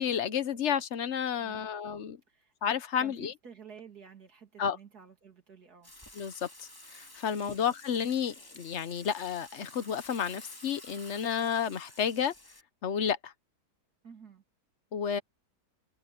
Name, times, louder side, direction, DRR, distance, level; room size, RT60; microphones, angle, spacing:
voice 1, 0.0-2.2 2.6-3.3 4.6-4.8 6.2-6.5 6.9-12.3 12.8-13.3 14.9-15.2, left 8 dB, 50° left, 1.0 m, -31 dB
voice 2, 1.4-1.8 2.3-2.5 3.0-5.9 7.4-7.7 14.0-14.4, right 6 dB, 65° right, 3.4 m, -52 dB
Water / Water tap faucet / Sink (filling or washing), 5.8-12.6, left 1 dB, 15° left, 2.4 m, -52 dB
omnidirectional pair, 1.8 m